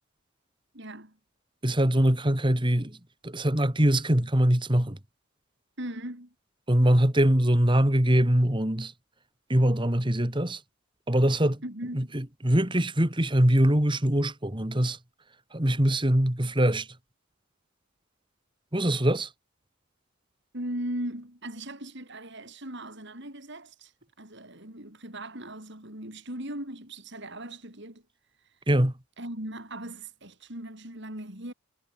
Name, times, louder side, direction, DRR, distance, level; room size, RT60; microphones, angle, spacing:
voice 1, 0.7-1.2 5.8-6.3 11.6-12.1 20.5-23.9 24.2-28.0 29.2-31.5, right 1 dB, 50° right, 5.6 m, -38 dB
voice 2, 1.6-3.0 3.2-5.0 6.7-8.9 9.5-10.6 11.1-11.6 11.9-15.0 15.5-16.9 18.7-19.3 28.7-28.9, right 1 dB, 20° right, 2.0 m, -23 dB
head